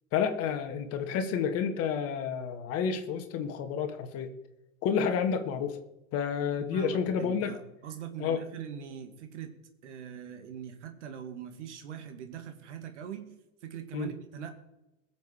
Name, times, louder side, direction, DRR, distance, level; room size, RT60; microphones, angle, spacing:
voice 1, 0.1-4.3 4.8-5.8 6.1-7.5 8.2-8.4 13.9-14.1, left 7 dB, 35° left, 6 dB, 1.8 m, -30 dB
voice 2, 6.6-13.3 13.6-14.5, right 8 dB, 60° right, 7 dB, 2.2 m, -42 dB
22.0 x 7.5 x 4.6 m, 0.92 s
figure-of-eight pair, 85°, 41 cm